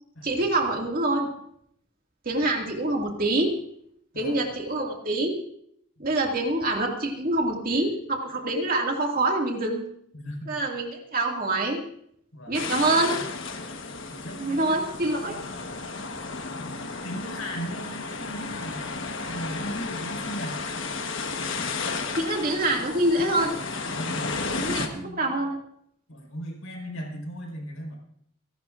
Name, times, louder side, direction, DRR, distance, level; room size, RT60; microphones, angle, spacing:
voice 1, 0.2-1.3 2.2-3.5 4.2-5.4 6.0-9.8 10.5-11.8 12.5-13.2 14.4-15.4 22.1-23.6 24.6-25.6, right 2 dB, 40° right, 1 dB, 2.2 m, -25 dB
voice 2, 10.1-10.5 12.3-12.6 14.1-14.9 15.2-15.6 16.5-20.6 24.0-25.4 26.1-28.0, equal, 80° left, 0 dB, 4.6 m, -37 dB
sound 1, 12.5-24.9, left 4 dB, 60° left, 1.3 m, -33 dB
28.0 x 11.5 x 2.5 m, 0.70 s
head